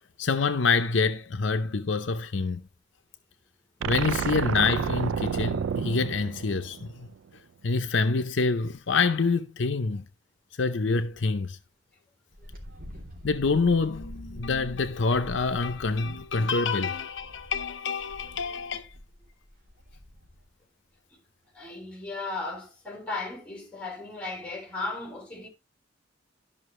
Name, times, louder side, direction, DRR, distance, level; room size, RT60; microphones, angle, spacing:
voice 1, 0.2-2.6 3.8-7.1 7.6-10.1 10.6-11.6 13.2-18.9, left 4 dB, 70° left, 0.6 m, -26 dB
sound 1, 3.8-7.1, right 6 dB, 85° right, 0.4 m, -30 dB
Wind, 12.3-20.5, left 1 dB, 50° right, 3.0 m, -45 dB
voice 2, 21.5-25.5, left 3 dB, 5° left, 4.3 m, -36 dB
13.0 x 5.7 x 3.1 m
head